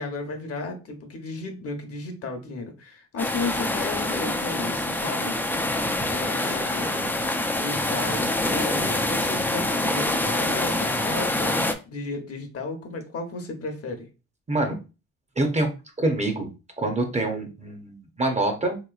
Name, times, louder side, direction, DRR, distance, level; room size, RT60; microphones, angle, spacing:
voice 1, 0.0-5.4 6.0-6.9 7.6-14.1, left 3 dB, 50° left, 5 dB, 0.9 m, -34 dB
sound 1, 3.2-11.7, left 2 dB, 5° left, 0.3 m, -25 dB
voice 2, 6.8-7.1 14.5-14.8 15.4-15.7 16.0-16.5 16.8-18.8, right 2 dB, 25° right, 5 dB, 0.7 m, -26 dB
3.1 x 3.0 x 2.4 m, 0.30 s
cardioid pair, 90°, 30 cm